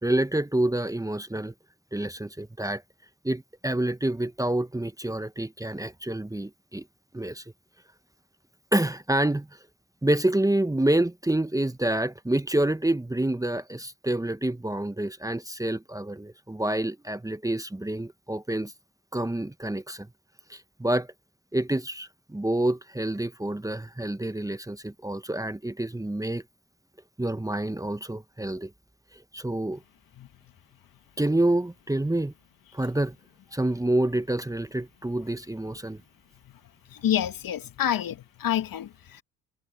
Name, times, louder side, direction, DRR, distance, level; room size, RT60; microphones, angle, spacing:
voice 1, 0.0-1.5 1.9-2.8 3.2-6.8 7.1-7.4 8.7-9.5 10.0-18.7 19.1-20.1 20.5-21.1 21.5-26.4 27.2-28.7 29.1-29.8 31.2-32.3 32.7-33.1 33.5-36.0, right 1 dB, 10° right, 1.3 m, -27 dB
voice 2, 36.9-39.2, left 10 dB, 55° left, 2.0 m, -28 dB
hypercardioid pair, 60°, 41 cm